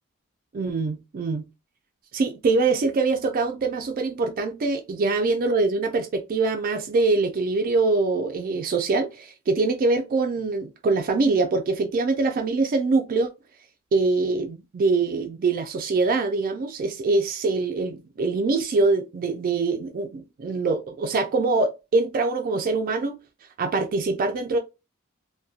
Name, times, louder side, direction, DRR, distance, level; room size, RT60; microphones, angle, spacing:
voice 1, 0.5-1.5 2.1-13.3 13.9-23.2 23.6-24.6, right 3 dB, 40° right, 0.3 m, -24 dB
2.7 x 2.1 x 2.3 m
head